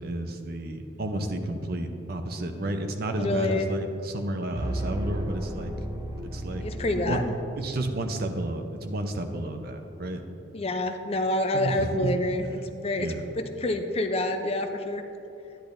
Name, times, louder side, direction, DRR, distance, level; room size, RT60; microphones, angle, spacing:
voice 1, 0.0-5.7 6.3-6.6 6.9-7.2 7.6-10.2 11.5-12.2 12.9-13.3, right 1 dB, 55° right, 6 dB, 0.7 m, -31 dB
voice 2, 3.2-3.7 6.5-7.3 10.5-13.1 13.4-15.0, left 1 dB, 35° left, 7 dB, 0.5 m, -27 dB
sound 1, 4.5-8.0, right 1 dB, 20° right, 0.6 m, -34 dB
10.5 x 10.5 x 2.6 m, 2.8 s
head